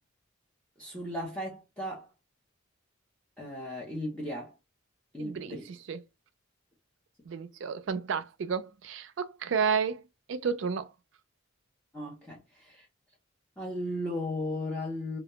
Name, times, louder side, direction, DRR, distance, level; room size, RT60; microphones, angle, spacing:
voice 1, 0.8-2.1 3.4-4.5 5.1-5.7 11.9-12.9 13.6-15.2, left 1 dB, 5° left, 0.6 m, -36 dB
voice 2, 5.2-6.0 7.3-10.0 10.3-10.9, right 6 dB, 65° right, 0.4 m, -31 dB
2.2 x 2.1 x 2.9 m
head